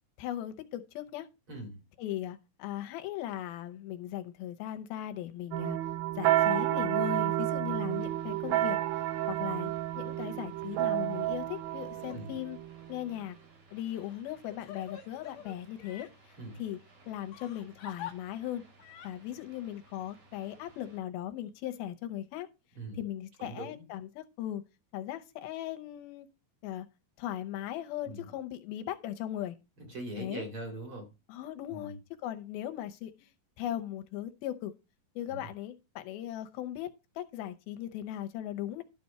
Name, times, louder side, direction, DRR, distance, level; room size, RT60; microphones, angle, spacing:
voice 1, 0.2-1.3 2.0-5.8 6.2-8.8 9.3-12.6 12.9-13.4 13.7-16.8 17.1-18.6 19.0-22.5 22.9-24.6 24.9-26.3 26.6-26.9 27.2-29.6 30.2-30.4 31.3-33.3 33.6-34.7 35.2-38.8, left 12 dB, 85° left, 2.7 m, -38 dB
voice 2, 1.5-1.8 12.0-12.3 16.4-16.6 22.8-23.0 23.4-23.8 28.0-28.3 29.8-31.1 31.7-31.9 35.3-35.4, right 2 dB, 40° right, 2.7 m, -42 dB
sound 1, 5.5-13.0, right 14 dB, 80° right, 2.4 m, -30 dB
sound 2, 7.9-21.0, right 2 dB, 65° right, 5.4 m, -60 dB
Crying sobbing, 11.9-12.2 12.8-12.9 14.0-16.1 17.3-18.1 18.8-19.1, left 9 dB, 65° left, 1.9 m, -46 dB
12.0 x 4.2 x 5.7 m
omnidirectional pair, 4.3 m